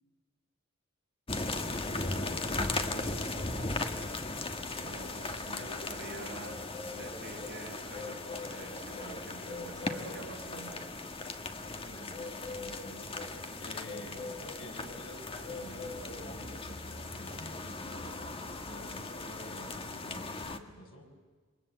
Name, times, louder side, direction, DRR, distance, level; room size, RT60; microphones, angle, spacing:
sound 1, 1.3-20.6, left 2 dB, 25° left, 1.5 m, -38 dB
voice 1, 1.6-3.6 11.8-14.2 14.6-21.0, equal, 85° left, 1 dB, 6.6 m, -49 dB
voice 2, 4.8-6.6 6.9-10.8 13.6-13.8, right 2 dB, 55° right, 0 dB, 5.7 m, -46 dB
28.0 x 24.0 x 7.9 m, 1.5 s
head